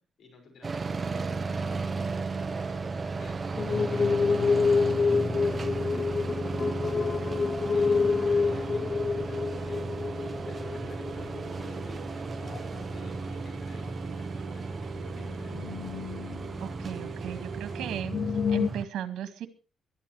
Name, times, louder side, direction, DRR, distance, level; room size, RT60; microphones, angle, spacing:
voice 1, 0.0-3.5 3.9-15.7, left 4 dB, 55° left, 5 dB, 5.8 m, -52 dB
sound 1, 0.6-18.8, right 4 dB, 30° right, 1.1 m, -35 dB
sound 2, 3.6-12.1 12.4-12.9 13.3-13.4 13.9-14.0 15.0-17.1 17.4-17.5 17.8-18.7, left 4 dB, 40° left, 0.6 m, -28 dB
sound 3, 5.3-18.0, right 8 dB, 50° right, 2.9 m, -46 dB
voice 2, 16.6-18.2 18.5-19.5, right 10 dB, 80° right, 9 dB, 1.9 m, -36 dB
23.0 x 12.5 x 3.3 m, 0.35 s
cardioid pair, 115°, 0 cm